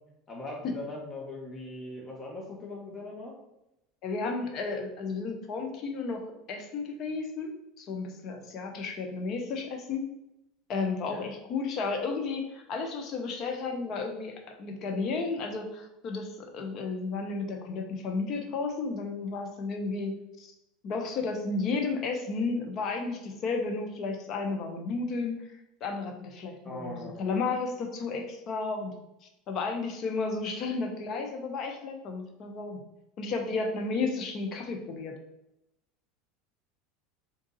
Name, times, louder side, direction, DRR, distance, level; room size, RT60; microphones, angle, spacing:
voice 1, 0.3-3.4 11.1-11.2 26.6-27.3, left 2 dB, 25° left, -1 dB, 1.2 m, -40 dB
voice 2, 4.0-6.2 6.5-7.5 7.8-10.0 10.7-20.5 20.8-25.4 25.8-28.9 29.2-32.8 33.2-35.1, left 4 dB, 45° left, 4 dB, 0.7 m, -33 dB
3.7 x 2.7 x 3.9 m, 0.87 s
supercardioid pair, 115°, 0 cm